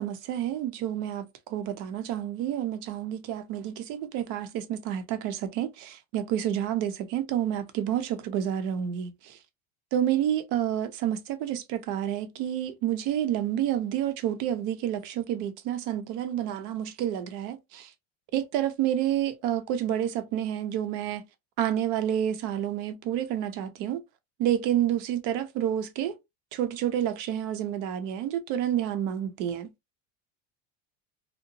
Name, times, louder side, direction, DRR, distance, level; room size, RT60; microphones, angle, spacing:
voice 1, 0.0-9.4 9.9-17.9 18.3-21.2 21.6-24.0 24.4-26.1 26.5-29.7, right 10 dB, 55° right, 0.6 m, -29 dB
2.8 x 2.1 x 2.5 m
supercardioid pair, 140°, 37 cm